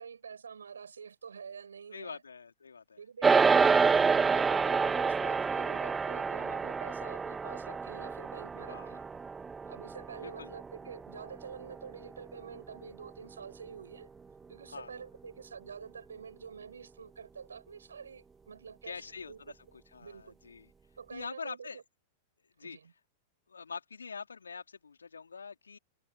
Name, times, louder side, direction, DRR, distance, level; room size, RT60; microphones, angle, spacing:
voice 1, 0.0-2.2 3.0-9.0 9.6-14.1 14.5-19.4 20.0-20.4 21.0-21.8 22.6-22.9, right 6 dB, 75° right, 6.3 m, -47 dB
voice 2, 1.9-3.0 8.7-9.0 10.2-10.5 14.7-15.0 18.8-19.5 19.9-20.7 21.1-21.8 22.6-22.8 23.5-25.8, left 5 dB, 80° left, 3.6 m, -44 dB
sound 1, 3.2-12.7, right 5 dB, 15° right, 0.5 m, -28 dB
figure-of-eight pair, 100°, 0 cm